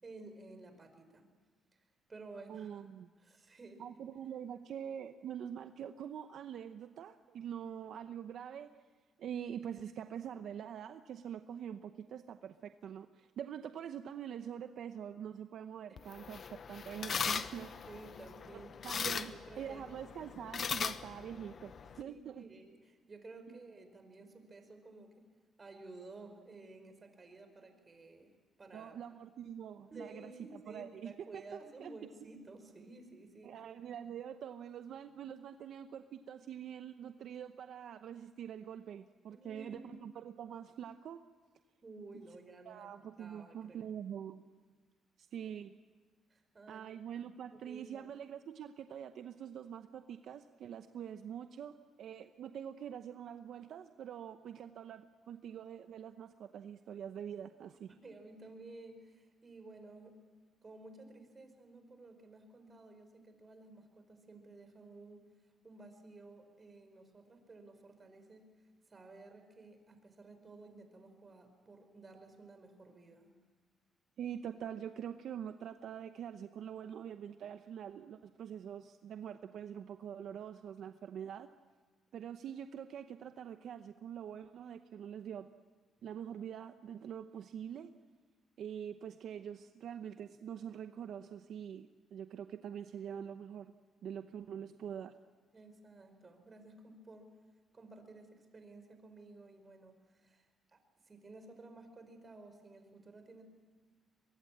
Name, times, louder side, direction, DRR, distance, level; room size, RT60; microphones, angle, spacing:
voice 1, 0.0-1.3 1.7-2.9 3.2-3.8 17.9-19.8 20.2-20.3 22.0-25.3 25.6-28.3 28.6-29.0 29.9-33.6 39.3-39.9 41.8-42.9 43.2-43.8 46.3-46.9 47.5-48.1 57.9-60.2 60.6-65.3 65.6-68.5 68.9-73.3 95.5-97.3 97.7-103.4, right 3 dB, 30° right, 7 dB, 5.3 m, -54 dB
voice 2, 2.5-3.1 3.8-8.7 9.2-16.4 16.7-17.9 18.8-21.7 22.0-22.5 28.7-31.1 31.5-31.9 33.4-41.2 42.7-44.4 45.2-45.7 46.7-57.9 74.2-81.5 82.1-85.5 86.0-87.9 88.6-93.7 94.0-95.1, right 9 dB, 70° right, 8 dB, 0.9 m, -45 dB
sound 1, 16.0-22.0, left 6 dB, 50° left, 1.0 m, -40 dB
23.5 x 23.0 x 8.7 m, 1.4 s
cardioid pair, 90°, 0 cm